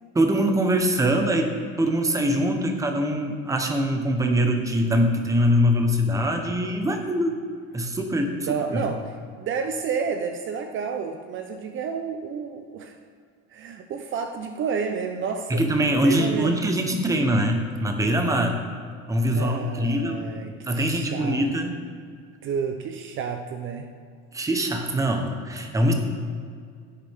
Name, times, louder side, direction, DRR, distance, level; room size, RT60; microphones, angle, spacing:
voice 1, 0.1-7.3 7.7-8.3 8.7-8.9 15.5-18.6 19.1-20.3 20.6-21.8 24.3-25.9, equal, 10° right, 4 dB, 1.1 m, -23 dB
voice 2, 8.5-13.0 13.5-15.6 16.0-16.5 19.3-21.5 22.4-23.9 25.7-25.8, right 6 dB, 40° right, 5 dB, 0.7 m, -30 dB
16.5 x 7.5 x 3.6 m, 2.1 s
cardioid pair, 145°, 30 cm